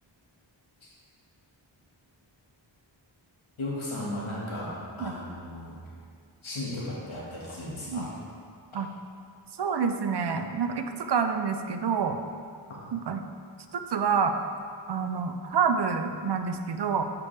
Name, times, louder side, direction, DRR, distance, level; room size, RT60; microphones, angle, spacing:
voice 1, 3.6-4.7 5.0-5.8 6.4-8.1 12.7-12.8, left 1 dB, 80° left, -6 dB, 1.8 m, -35 dB
voice 2, 9.6-12.2 12.9-13.2 13.7-14.4 14.9-17.0, right 6 dB, 60° right, 7 dB, 0.5 m, -27 dB
8.2 x 5.0 x 3.3 m, 2.2 s
wide cardioid pair, 70°, 47 cm